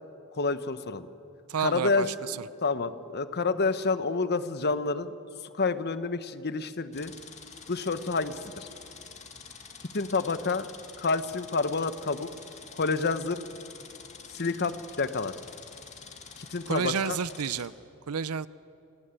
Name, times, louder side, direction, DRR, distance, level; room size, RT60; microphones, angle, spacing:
voice 1, 0.4-1.1 1.6-2.3 2.6-5.1 5.5-7.1 7.7-8.7 9.9-10.7 11.0-12.3 12.7-13.4 14.3-15.3 16.4-17.2, left 4 dB, 50° left, 12 dB, 1.0 m, -28 dB
voice 2, 1.5-2.4 16.7-17.7 18.1-18.5, right 6 dB, 75° right, 18 dB, 0.6 m, -30 dB
sound 1, 6.9-17.7, left 5 dB, 30° left, 2.2 m, -47 dB
28.5 x 16.5 x 9.0 m, 2.7 s
head